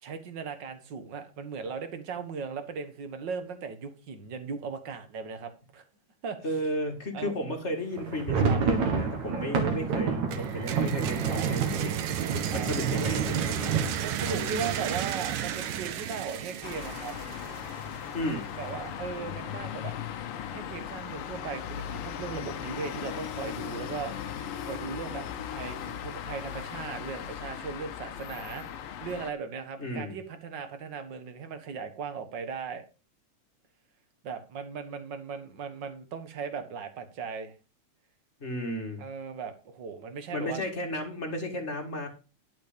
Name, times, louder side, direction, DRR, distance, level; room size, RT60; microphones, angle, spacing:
voice 1, 0.0-5.8 6.2-6.4 7.1-7.3 8.4-8.6 11.3-11.5 12.5-12.7 14.0-17.1 18.5-19.9 20.5-32.8 34.2-37.5 39.0-40.6, right 5 dB, 45° right, 8 dB, 1.5 m, -38 dB
voice 2, 6.4-12.0 12.3-13.9 14.2-14.8 18.1-18.5 29.8-30.2 38.4-39.0 40.3-42.1, equal, 25° left, 3 dB, 1.8 m, -34 dB
sound 1, 7.9-15.7 16.0-16.1 16.3-16.6 17.1-17.6, right 5 dB, 65° right, 3.1 m, -30 dB
sound 2, 10.3-18.1, right 10 dB, 85° right, 2.7 m, -33 dB
sound 3, 16.6-29.3, left 9 dB, 80° left, 1.2 m, -38 dB
11.5 x 6.7 x 5.2 m, 0.31 s
omnidirectional pair, 3.7 m